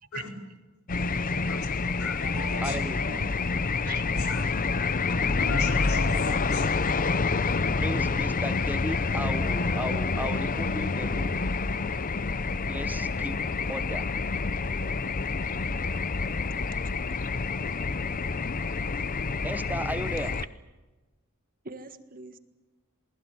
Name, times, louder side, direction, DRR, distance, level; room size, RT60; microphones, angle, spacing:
sound 1, 0.9-20.5, left 4 dB, 40° left, 0.7 m, -28 dB
voice 1, 2.0-3.2 4.1-4.4 5.3-7.0, left 3 dB, 90° left, 3 dB, 4.9 m, -37 dB
voice 2, 2.6-3.0 7.8-11.4 12.7-13.4 13.7-14.0 19.4-20.4, right 1 dB, 10° right, 12 dB, 0.9 m, -35 dB
voice 3, 3.8-4.3 5.0-5.6 13.2-13.3 14.3-14.4 16.8-17.2 21.6-22.4, right 3 dB, 40° right, 9 dB, 1.6 m, -43 dB
28.5 x 20.0 x 8.1 m, 1.2 s
head